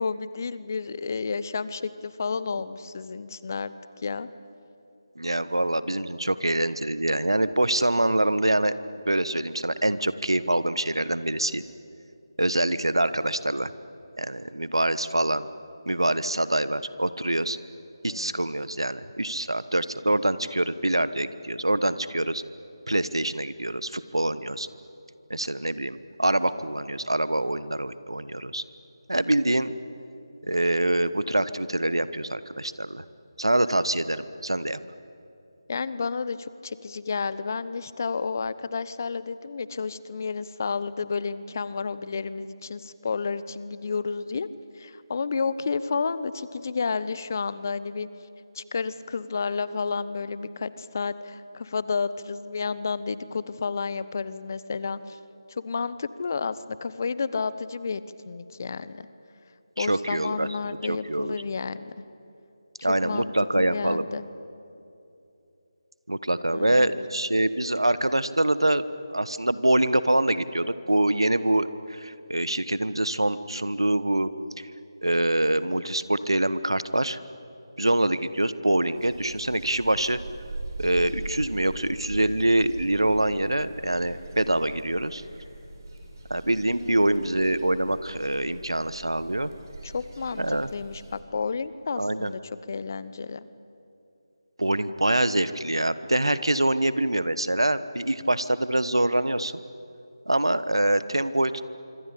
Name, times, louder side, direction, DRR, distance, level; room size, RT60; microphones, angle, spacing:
voice 1, 0.0-3.7 4.0-4.3 18.1-18.5 35.7-44.5 44.8-48.1 48.5-55.2 55.5-59.1 59.8-61.9 63.0-64.3 66.5-67.0 86.8-87.3 89.8-92.4 92.7-93.4, left 5 dB, 40° left, 15 dB, 1.0 m, -31 dB
voice 2, 5.2-8.7 9.0-11.6 12.4-13.7 14.2-15.5 15.9-17.6 18.0-22.4 22.9-24.7 25.3-28.6 29.1-29.7 30.5-33.0 33.4-34.8 59.8-61.4 62.8-64.1 66.1-68.8 69.1-74.3 74.6-74.7 75.0-77.2 77.8-80.2 80.8-85.2 86.3-89.5 90.4-90.7 92.0-92.3 94.6-99.5 100.3-101.7, right 1 dB, 85° right, 15 dB, 1.2 m, -25 dB
sound 1, 78.9-91.2, right 2 dB, 50° right, 5.1 m, -41 dB
25.5 x 24.5 x 8.5 m, 2.7 s
figure-of-eight pair, 160°, 2 cm